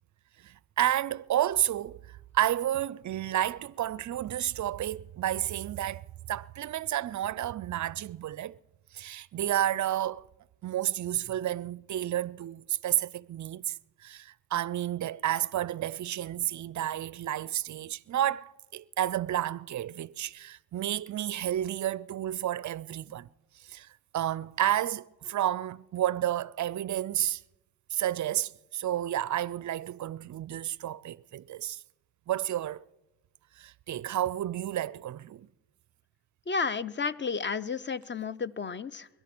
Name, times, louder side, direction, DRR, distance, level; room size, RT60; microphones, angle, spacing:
voice 1, 0.4-2.0 2.3-6.0 6.3-8.6 8.9-10.3 10.6-13.8 14.0-23.3 23.7-23.9 24.1-27.4 27.9-31.8 32.3-32.8 33.6-35.5, right 12 dB, 45° right, 0.5 m, -31 dB
voice 2, 36.5-39.1, left 5 dB, 25° left, 0.5 m, -32 dB
21.5 x 11.0 x 6.0 m
cardioid pair, 80°, 44 cm